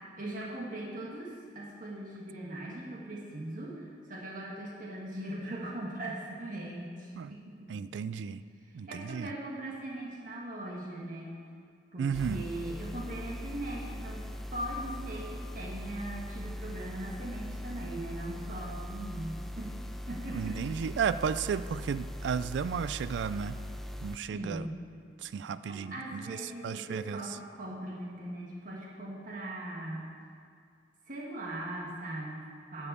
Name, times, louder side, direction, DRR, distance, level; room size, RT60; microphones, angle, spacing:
voice 1, 0.0-7.8 8.9-11.4 11.9-14.2 14.5-19.7 20.1-20.9 24.3-24.9 25.7-30.1 31.1-32.9, right 1 dB, 50° right, -4 dB, 1.4 m, -40 dB
voice 2, 7.7-8.4 8.7-9.3 12.0-12.4 20.3-23.6 24.0-24.7 25.2-27.2, right 6 dB, 75° right, 14 dB, 0.3 m, -33 dB
sound 1, 12.1-24.2, equal, ahead, 0.4 m, -41 dB
11.0 x 5.4 x 8.3 m, 2.3 s
head